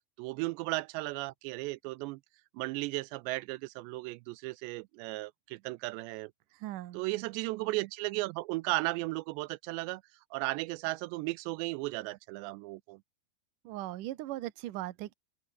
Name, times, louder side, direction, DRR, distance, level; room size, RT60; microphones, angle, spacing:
voice 1, 0.2-2.2 2.5-6.3 6.9-10.0 10.3-13.0, right 22 dB, 85° right, 2.8 m, -35 dB
voice 2, 6.5-7.0 13.6-15.1, right 15 dB, 65° right, 2.2 m, -39 dB
open air
omnidirectional pair, 5.0 m